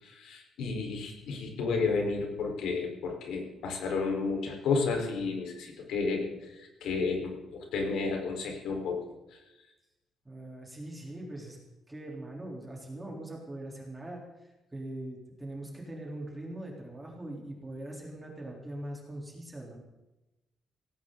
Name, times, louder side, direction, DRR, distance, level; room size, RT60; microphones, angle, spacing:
voice 1, 0.0-9.1, left 4 dB, 85° left, 2 dB, 4.5 m, -32 dB
voice 2, 10.3-11.6 11.9-14.2 14.7-19.8, right 1 dB, 10° right, -2 dB, 3.7 m, -41 dB
17.5 x 17.5 x 4.0 m, 0.99 s
cardioid pair, 180°, 0 cm